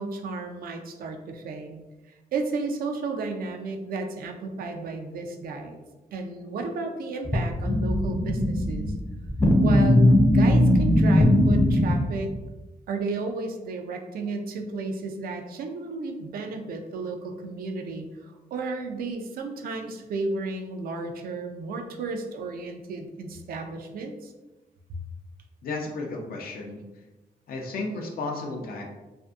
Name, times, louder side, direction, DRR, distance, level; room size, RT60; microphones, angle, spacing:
voice 1, 0.0-1.8 2.3-5.8 6.1-8.9 9.6-12.3 12.9-24.3, right 3 dB, 85° right, 4 dB, 0.4 m, -33 dB
sound 1, 7.3-12.4, left 1 dB, 15° left, 0.4 m, -20 dB
voice 2, 25.6-27.0 27.5-28.8, left 3 dB, 85° left, 1 dB, 0.5 m, -33 dB
2.6 x 2.5 x 2.3 m, 1.1 s
wide cardioid pair, 140°, 15 cm